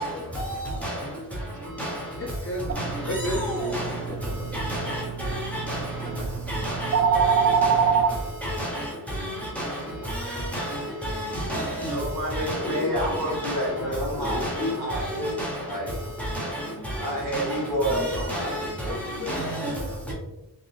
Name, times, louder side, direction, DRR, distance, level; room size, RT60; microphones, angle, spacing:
voice 1, 0.5-1.7 5.9-7.6 9.6-10.7, right 3 dB, 90° right, 0.8 m, -49 dB
sound 1, 1.6-2.4 2.9-3.6 4.2-4.9 5.5-6.2 6.8-7.5 8.0-8.8 9.3-10.1 10.6-11.3 11.9-12.6 13.2-13.9 14.4-15.2 15.7-16.5 17.0-17.7 18.3-19.0, left 1 dB, 20° right, 1.2 m, -44 dB
voice 2, 2.2-4.4 11.3-11.4 11.8-11.9 12.6-13.2 13.8-14.8 16.7-16.9 17.9-18.1 18.6-19.9, left 1 dB, 30° left, 0.8 m, -34 dB
sound 2, 2.7-8.1, right 6 dB, 40° right, 0.4 m, -26 dB
voice 3, 2.8-3.9 4.5-5.0 5.3-5.8 6.5-6.9 7.5-7.8 8.4-8.9 9.6-9.7 10.1-11.9 12.3-12.8 13.4-13.5 14.2-15.0 15.4-15.5 16.2-16.3 16.5-16.6 17.3-17.5 17.9-18.7 19.3-19.7, equal, 5° left, 1.3 m, -30 dB
voice 4, 11.9-15.9 17.0-18.5 20.0-20.1, equal, 55° right, 1.5 m, -29 dB
3.9 x 3.4 x 2.8 m
wide cardioid pair, 65°, 42 cm